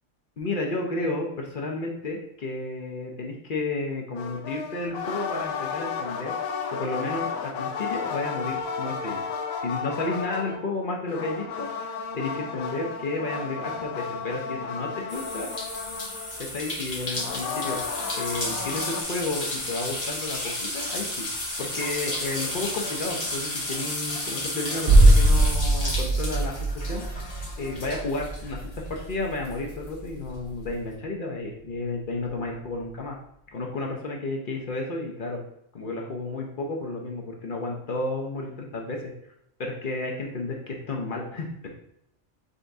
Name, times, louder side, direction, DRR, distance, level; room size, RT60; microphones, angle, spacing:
voice 1, 0.4-6.3 6.7-9.3 9.6-11.7 12.1-15.5 16.4-17.8 18.1-21.3 21.6-26.6 26.9-27.0 27.4-33.2 33.5-35.4 35.7-39.1 39.6-41.7, left 2 dB, 50° left, 0 dB, 0.7 m, -32 dB
sound 1, 4.2-10.6 11.1-16.5 17.1-19.0, left 6 dB, 85° left, 1.0 m, -33 dB
sound 2, 15.1-29.1 29.4-30.7, left 1 dB, 30° left, 1.0 m, -33 dB
sound 3, 24.9-30.6 30.9-31.0, right 1 dB, 85° right, 0.4 m, -22 dB
5.3 x 3.4 x 2.6 m, 0.78 s
omnidirectional pair, 1.4 m